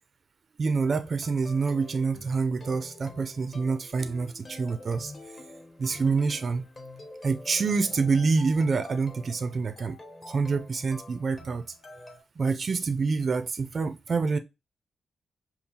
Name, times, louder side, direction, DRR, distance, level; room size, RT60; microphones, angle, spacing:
voice 1, 0.6-5.1 5.8-6.7 7.2-10.0 10.2-11.6 12.4-14.4, right 4 dB, 45° right, 0.4 m, -27 dB
sound 1, 0.8-12.2, left 2 dB, 35° left, 1.0 m, -47 dB
5.2 x 2.3 x 2.8 m
cardioid pair, 110°, 0 cm